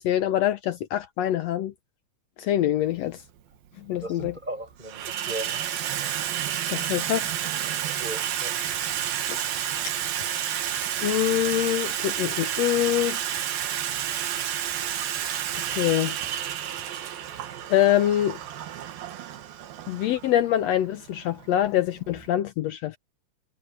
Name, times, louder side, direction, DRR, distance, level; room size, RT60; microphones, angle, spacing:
voice 1, 0.0-1.7 2.4-3.2 3.9-4.3 6.7-7.3 9.3-9.4 9.8-9.9 11.0-13.2 15.8-16.1 17.7-18.4 19.9-23.0, left 12 dB, 85° left, 1.5 m, -24 dB
Water tap faucet / Sink (filling or washing), 2.9-3.0 4.0-4.4 4.7-22.3, right 10 dB, 85° right, 3.4 m, -31 dB
voice 2, 3.9-5.6 8.0-8.5, right 2 dB, 10° right, 7.2 m, -37 dB
omnidirectional pair, 4.1 m